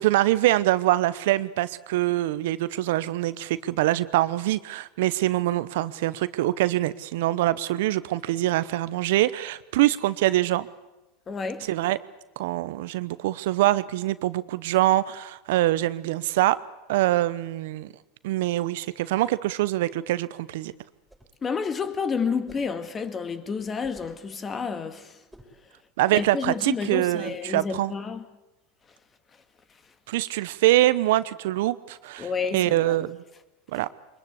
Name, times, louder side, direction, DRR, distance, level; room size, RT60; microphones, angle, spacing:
voice 1, 0.0-10.7 11.6-12.0 12.4-16.6 16.9-17.9 18.2-20.7 26.0-27.9 30.1-33.2 33.7-33.9, right 16 dB, 70° right, 0.8 m, -24 dB
voice 2, 11.3-11.7 21.4-25.1 26.1-28.2 32.2-33.0, left 5 dB, 25° left, 2.0 m, -30 dB
sound 1, 20.9-21.4 22.5-22.8 23.8-24.3 25.3-25.6, right 1 dB, 5° right, 6.2 m, -52 dB
23.5 x 21.5 x 8.3 m
hypercardioid pair, 95°, 0 cm